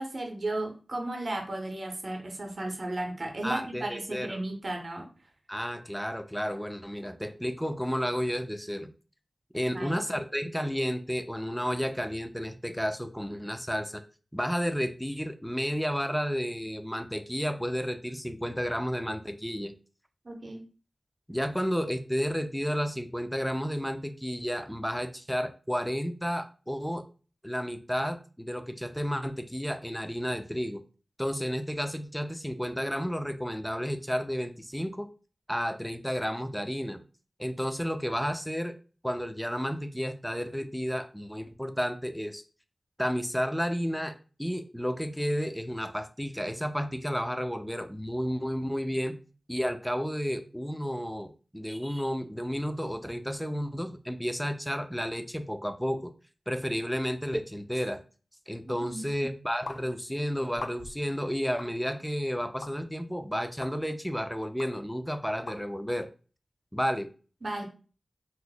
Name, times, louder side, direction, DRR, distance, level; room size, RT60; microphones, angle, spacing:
voice 1, 0.0-5.1 9.7-10.0 20.2-20.7 58.6-59.1 67.4-67.6, right 2 dB, 50° right, 3 dB, 0.7 m, -34 dB
voice 2, 3.4-4.4 5.5-8.9 9.5-14.0 14.3-19.7 21.3-27.0 27.4-30.8 31.2-35.1 35.5-37.0 37.4-38.7 39.0-42.4 43.0-44.1 44.4-49.2 49.5-56.1 56.5-58.0 58.5-66.1 66.7-67.1, equal, 5° left, 8 dB, 0.3 m, -32 dB
sound 1, 59.7-59.8 60.5-61.0 61.6-61.7 62.6-62.7 63.6-63.7 64.6-64.7 65.5-65.6, left 3 dB, 85° left, 0.4 m, -40 dB
2.8 x 2.0 x 3.9 m, 0.37 s
wide cardioid pair, 90°, 0 cm